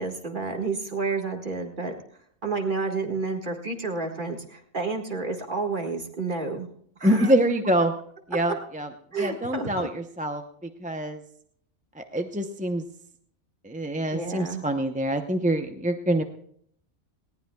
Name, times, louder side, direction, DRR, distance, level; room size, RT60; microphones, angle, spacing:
voice 1, 0.0-1.9 2.4-6.7 7.0-7.3 9.1-9.9 14.1-14.6, right 3 dB, 45° right, 3 dB, 1.9 m, -30 dB
voice 2, 7.0-7.9 8.3-8.9 9.2-11.2 12.0-12.8 13.6-16.2, right 1 dB, 10° right, 5 dB, 0.6 m, -25 dB
20.0 x 18.0 x 2.3 m, 0.65 s
omnidirectional pair, 1.2 m